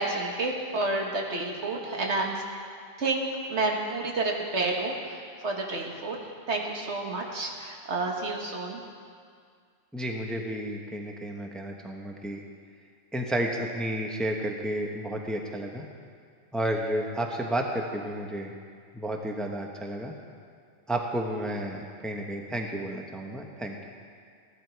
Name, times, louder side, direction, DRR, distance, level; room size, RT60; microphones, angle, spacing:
voice 1, 0.0-2.4 3.0-6.2 6.5-8.8, right 2 dB, 75° right, 0 dB, 1.8 m, -30 dB
voice 2, 9.9-12.4 13.1-15.8 16.5-18.5 18.9-20.1 20.9-23.8, right 1 dB, ahead, 1 dB, 0.9 m, -31 dB
15.5 x 11.5 x 4.6 m, 2.1 s
omnidirectional pair, 1.2 m